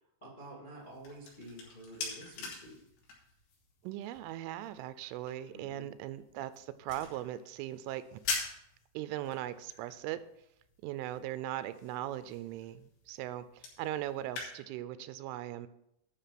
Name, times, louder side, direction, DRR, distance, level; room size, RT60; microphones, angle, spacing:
voice 1, 0.2-2.8 5.5-5.9, right 1 dB, 50° left, -3 dB, 0.5 m, -49 dB
sound 1, 0.7-14.5, left 4 dB, 85° left, 5.3 m, -45 dB
voice 2, 3.8-8.2 8.9-10.2 10.8-15.7, right 13 dB, 85° right, 13 dB, 3.1 m, -39 dB
11.5 x 6.3 x 5.9 m, 0.78 s
omnidirectional pair, 5.5 m